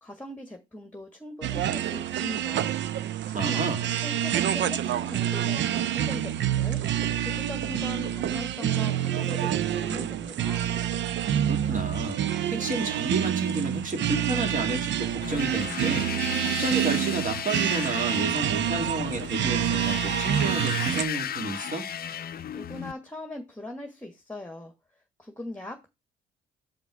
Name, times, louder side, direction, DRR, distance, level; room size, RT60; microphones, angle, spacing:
voice 1, 0.0-2.8 3.3-3.7 4.0-6.8 7.2-10.7 22.5-24.7 25.2-25.9, left 1 dB, 5° left, 1.5 m, -40 dB
sound 1, 1.4-21.0, right 10 dB, 65° right, 0.6 m, -27 dB
voice 2, 3.3-3.9 11.4-12.2 12.5-16.1 16.4-21.9, right 2 dB, 40° right, 2.4 m, -31 dB
sound 2, 15.2-22.9, left 9 dB, 50° left, 0.6 m, -35 dB
6.4 x 5.2 x 4.7 m
cardioid pair, 90°, 20 cm